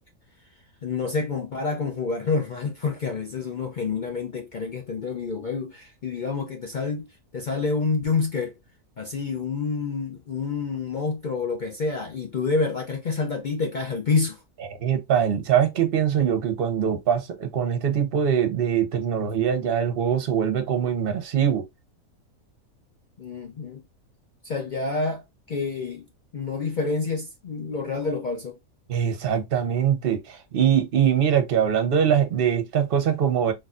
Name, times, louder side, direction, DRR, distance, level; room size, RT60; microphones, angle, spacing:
voice 1, 0.8-7.1 7.3-8.5 9.0-14.4 23.2-23.8 24.4-26.1 26.3-28.6, left 4 dB, 60° left, 0.4 m, -28 dB
voice 2, 14.8-21.6 28.9-33.5, right 8 dB, 45° right, 0.9 m, -23 dB
4.0 x 2.7 x 2.4 m
omnidirectional pair, 1.5 m